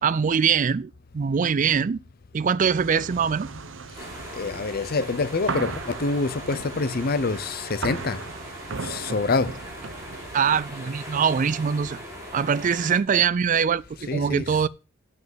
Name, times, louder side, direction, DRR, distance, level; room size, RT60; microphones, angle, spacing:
voice 1, 0.0-2.0 2.3-3.5 10.3-12.0 12.3-14.7, right 6 dB, 40° right, 0.4 m, -23 dB
sound 1, 2.6-10.6, right 4 dB, 75° right, 0.8 m, -37 dB
sound 2, 4.0-13.0, equal, 15° right, 5.5 m, -40 dB
voice 2, 4.3-8.2 8.8-9.6 14.1-14.6, left 3 dB, 50° left, 0.7 m, -26 dB
8.1 x 5.4 x 7.8 m
head